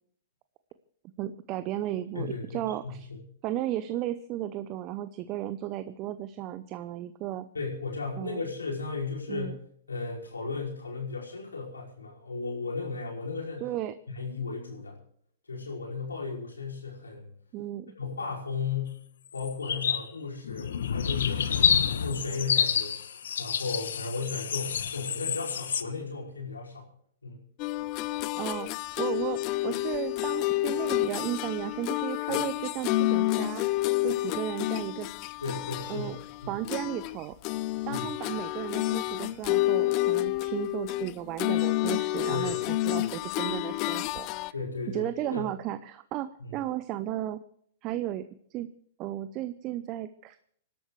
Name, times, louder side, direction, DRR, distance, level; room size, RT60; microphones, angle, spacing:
voice 1, 1.2-3.1 3.4-7.5 8.2-8.5 9.3-9.6 13.6-14.0 17.5-17.9 28.3-28.7 29.0-33.6 34.0-35.1 35.9-36.2 36.5-37.4 37.9-44.3 44.9-47.4 47.8-48.3 48.5-48.7 49.0-50.4, right 13 dB, 40° right, 12 dB, 0.7 m, -34 dB
voice 2, 2.2-3.2 7.5-9.6 9.9-13.7 14.1-15.0 15.5-17.3 18.0-19.0 19.3-23.0 23.4-26.9 27.2-27.4 35.4-36.6 37.9-38.1 42.3-42.6 43.0-43.1 44.5-45.5 46.4-46.6, left 4 dB, 90° left, -2 dB, 5.3 m, -35 dB
sound 1, 19.3-20.0 20.4-25.8, left 8 dB, 70° left, 1.1 m, -28 dB
sound 2, 27.6-37.2 37.4-44.5, left 18 dB, 40° left, 0.5 m, -29 dB
26.0 x 12.5 x 3.3 m, 0.63 s
hypercardioid pair, 110°, 0 cm